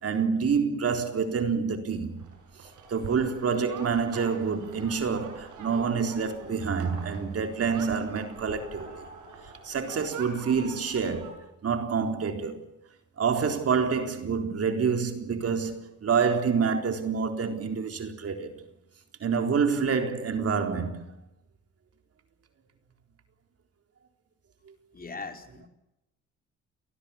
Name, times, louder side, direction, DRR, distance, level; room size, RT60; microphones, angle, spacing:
voice 1, 0.0-2.2 2.9-9.1 9.6-11.3 11.6-12.6 13.2-18.5 19.2-21.0, right 6 dB, 50° right, 3.9 m, -27 dB
sound 1, 2.2-11.3, right 4 dB, 85° right, 7.4 m, -45 dB
voice 2, 24.9-25.7, left 4 dB, 30° left, 4.5 m, -40 dB
29.5 x 19.0 x 7.2 m
cardioid pair, 90°, 30 cm